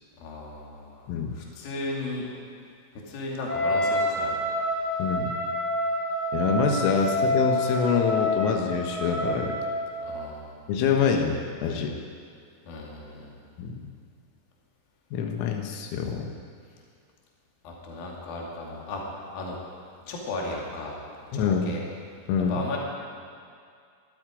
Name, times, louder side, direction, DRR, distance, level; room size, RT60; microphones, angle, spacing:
voice 1, 0.2-2.3 2.9-4.5 10.0-10.6 12.7-13.4 17.6-19.0 19.3-19.6 20.1-21.0 21.3-21.8 22.5-22.8, left 2 dB, 50° left, -2 dB, 3.7 m, -35 dB
Wind instrument woodwind instrument, 3.5-10.1, left 1 dB, 20° left, 4.5 m, -28 dB
voice 2, 5.0-5.3 6.3-9.6 10.7-12.0 13.6-13.8 15.1-16.3 21.3-21.7 22.3-22.6, left 6 dB, 85° left, 3 dB, 4.0 m, -25 dB
22.5 x 12.5 x 5.1 m, 2.3 s
omnidirectional pair, 6.0 m